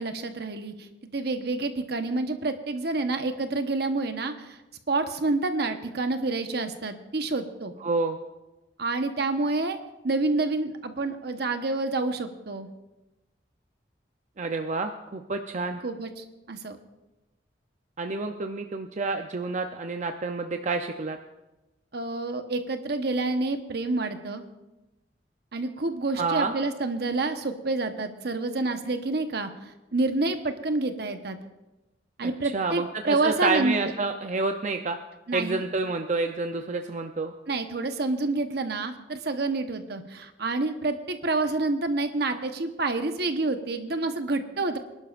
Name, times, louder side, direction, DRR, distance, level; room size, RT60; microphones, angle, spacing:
voice 1, 0.0-4.6 4.9-7.7 8.8-9.8 10.0-12.7 15.6-16.8 21.9-24.4 25.5-31.4 32.2-33.9 35.3-35.7 37.5-44.8, right 3 dB, 65° right, 7 dB, 1.1 m, -28 dB
voice 2, 7.8-8.2 14.4-15.8 18.0-21.2 26.2-26.5 32.5-35.0 35.3-37.3, right 3 dB, 40° right, 5 dB, 0.6 m, -28 dB
25.5 x 11.5 x 2.5 m, 1.0 s
head